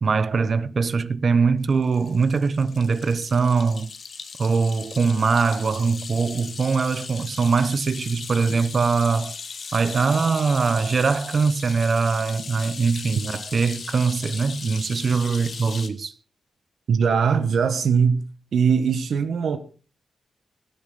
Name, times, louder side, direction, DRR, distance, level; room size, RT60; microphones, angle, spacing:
voice 1, 0.0-3.9 4.4-9.3 9.7-16.1, right 5 dB, 45° right, 0.8 m, -22 dB
sound 1, 1.7-15.9, left 5 dB, 50° left, 1.5 m, -38 dB
voice 2, 16.9-18.2 18.5-19.6, right 6 dB, 70° right, 1.4 m, -20 dB
17.5 x 9.5 x 4.0 m
wide cardioid pair, 135°, 0 cm